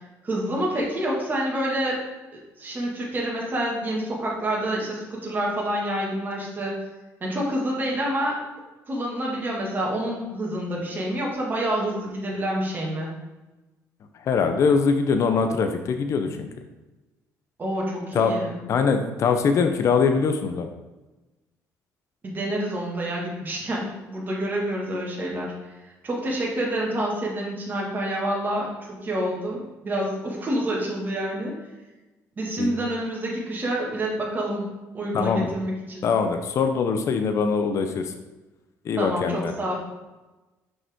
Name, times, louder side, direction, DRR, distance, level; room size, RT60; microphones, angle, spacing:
voice 1, 0.2-2.0 2.3-6.8 7.2-8.4 8.9-13.1 17.6-18.6 22.2-25.5 26.0-31.5 32.4-34.6 34.9-36.0 39.0-39.8, right 1 dB, 30° right, -3 dB, 1.8 m, -28 dB
voice 2, 14.2-16.5 18.1-18.3 18.7-20.7 32.6-32.7 35.1-35.5 36.0-38.1 38.8-39.5, left 5 dB, 50° left, 7 dB, 0.6 m, -22 dB
5.6 x 5.4 x 3.5 m, 1.1 s
cardioid pair, 105°, 6 cm